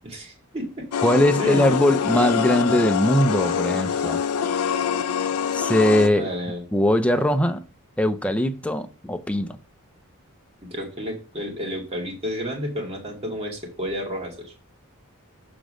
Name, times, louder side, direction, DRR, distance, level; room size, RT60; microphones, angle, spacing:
voice 1, 0.0-0.9 1.4-1.7 3.7-4.1 6.1-6.6 10.7-14.5, equal, 25° right, 2.3 m, -31 dB
sound 1, 0.9-6.1, left 7 dB, 90° left, 0.6 m, -25 dB
voice 2, 1.0-4.2 5.5-6.3 6.7-7.6 8.0-9.6, left 1 dB, 5° left, 0.5 m, -21 dB
7.0 x 3.8 x 6.2 m
head